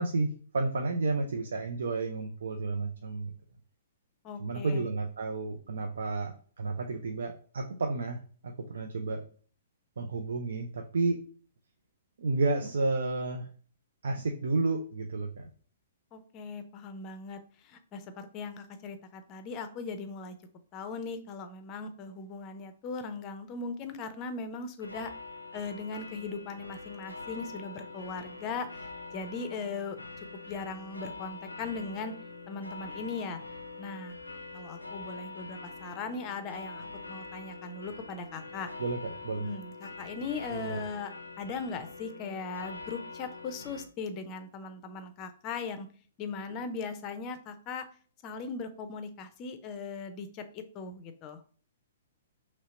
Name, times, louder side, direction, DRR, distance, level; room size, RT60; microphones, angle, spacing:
voice 1, 0.0-3.3 4.4-9.2 10.0-11.2 12.2-13.5 14.0-15.5 38.8-39.5 40.5-40.8, right 3 dB, 65° right, 4 dB, 0.4 m, -31 dB
voice 2, 4.2-4.9 16.1-20.4 20.7-25.1 25.5-32.1 32.5-33.4 33.8-34.1 34.5-38.7 39.4-41.1 41.4-45.9 46.2-47.8 48.2-51.4, left 4 dB, 30° left, 9 dB, 0.5 m, -39 dB
sound 1, 24.8-43.9, left 3 dB, 85° left, 0.4 m, -44 dB
3.0 x 2.8 x 4.2 m, 0.43 s
figure-of-eight pair, 115°, 0 cm